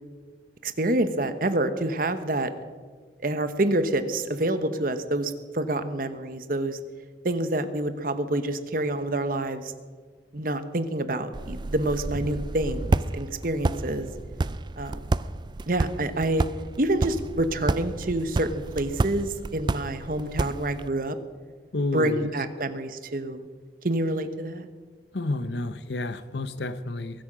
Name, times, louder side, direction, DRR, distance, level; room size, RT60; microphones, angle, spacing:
voice 1, 0.6-2.5 3.2-6.8 7.2-9.7 10.3-14.1 14.8-15.1 15.7-16.4 16.8-21.2 21.9-23.5 23.8-24.7, right 1 dB, 50° right, 10 dB, 1.1 m, -27 dB
sound 1, 11.3-20.9, right 2 dB, 25° right, 0.3 m, -30 dB
voice 2, 21.7-22.3 25.1-27.2, left 2 dB, 70° left, 13 dB, 0.9 m, -30 dB
22.5 x 8.6 x 6.2 m, 1.5 s
head